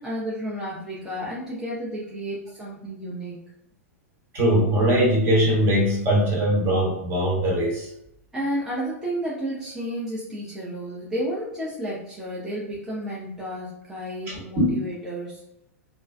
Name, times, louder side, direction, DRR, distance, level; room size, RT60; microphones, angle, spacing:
voice 1, 0.0-3.4 8.3-15.4, equal, 5° right, -7 dB, 0.5 m, -32 dB
voice 2, 4.3-7.9 14.3-14.7, equal, 30° right, -3 dB, 0.9 m, -21 dB
2.4 x 2.3 x 2.2 m, 0.81 s
figure-of-eight pair, 100°, 8 cm